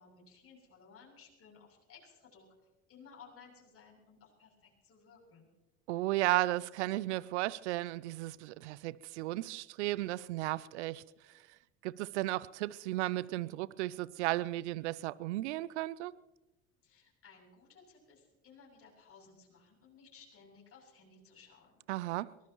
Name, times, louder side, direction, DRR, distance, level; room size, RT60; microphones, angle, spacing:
voice 1, 0.0-2.5 2.9-5.5 16.8-21.8, left 5 dB, 40° left, 7.9 m, -58 dB
voice 2, 5.9-11.0 11.3-11.4 11.8-16.1 21.9-22.3, right 17 dB, 85° right, 0.6 m, -34 dB
23.0 x 19.5 x 3.0 m
hypercardioid pair, 75°, 34 cm